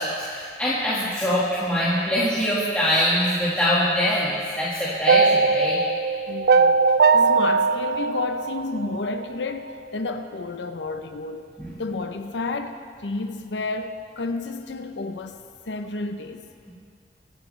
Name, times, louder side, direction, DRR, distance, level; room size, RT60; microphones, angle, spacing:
voice 1, 0.0-5.8 11.6-11.7, equal, 10° left, -10 dB, 1.8 m, -23 dB
sound 1, 5.1-9.3, right 4 dB, 60° right, 0.3 m, -19 dB
voice 2, 6.3-6.8 7.1-11.5 11.8-16.5, left 3 dB, 85° left, 7 dB, 0.7 m, -31 dB
23.5 x 10.5 x 3.3 m, 2.3 s
head